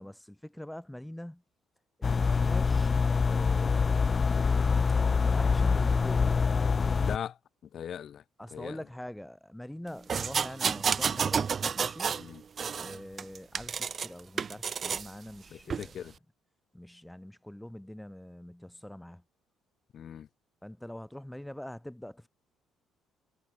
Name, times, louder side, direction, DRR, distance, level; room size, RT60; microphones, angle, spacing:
voice 1, 0.0-1.4 2.0-2.9 3.3-4.1 5.2-6.4 8.4-11.5 11.7-12.2 12.7-15.9 16.7-19.2 20.6-22.3, left 1 dB, 5° left, 3.6 m, -44 dB
sound 1, 2.0-7.2, left 5 dB, 30° left, 0.8 m, -25 dB
voice 2, 7.0-7.4 7.7-8.2 8.5-8.8 12.2-12.4 15.5-16.2 19.9-20.3, left 9 dB, 50° left, 4.9 m, -39 dB
sound 2, 10.1-12.3 12.6-14.1 14.4-15.1 15.7-15.9, right 6 dB, 35° right, 0.3 m, -30 dB
cardioid pair, 125°, 0 cm